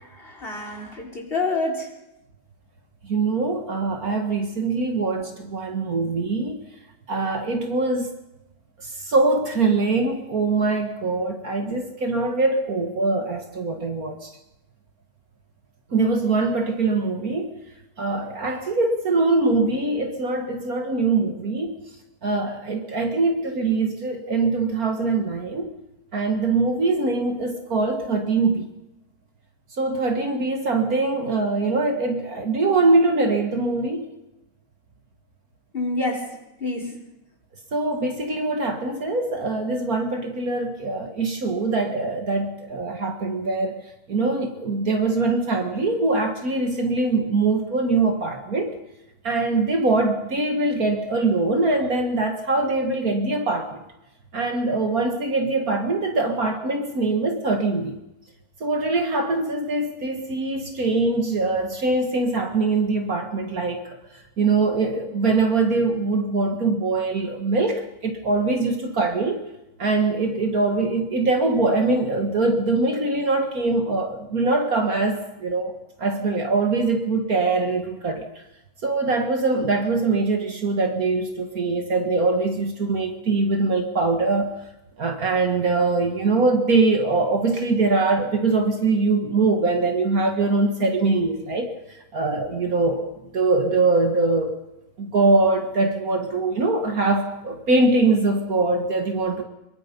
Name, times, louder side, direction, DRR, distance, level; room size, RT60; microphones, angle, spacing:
voice 1, 0.1-1.9 35.7-36.3 36.6-37.0, left 2 dB, 30° left, 1 dB, 4.0 m, -27 dB
voice 2, 3.0-6.6 7.1-8.1 8.8-14.3 15.9-17.5 18.0-21.8 22.2-25.7 26.1-28.7 29.8-34.1 37.7-43.8 44.1-48.7 49.2-53.8 54.3-58.0 58.6-63.8 64.4-69.4 69.8-75.7 76.0-78.3 78.8-84.5 85.0-91.7 92.1-94.5 95.0-99.4, right 3 dB, 55° right, 4 dB, 2.1 m, -23 dB
24.0 x 22.5 x 5.4 m, 0.94 s
omnidirectional pair, 1.9 m